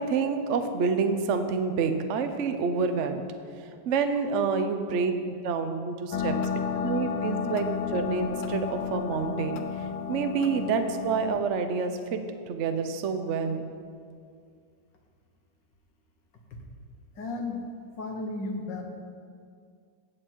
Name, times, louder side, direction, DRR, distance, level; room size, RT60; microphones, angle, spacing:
voice 1, 0.0-3.2 3.9-6.4 6.7-12.2 12.5-13.7, right 5 dB, 75° right, 7 dB, 0.6 m, -28 dB
sound 1, 6.1-11.4, left 7 dB, 80° left, 1.5 m, -32 dB
voice 2, 17.2-17.6 18.0-18.8, left 2 dB, 55° left, 2 dB, 1.9 m, -34 dB
16.0 x 7.9 x 4.6 m, 2.2 s
omnidirectional pair, 2.4 m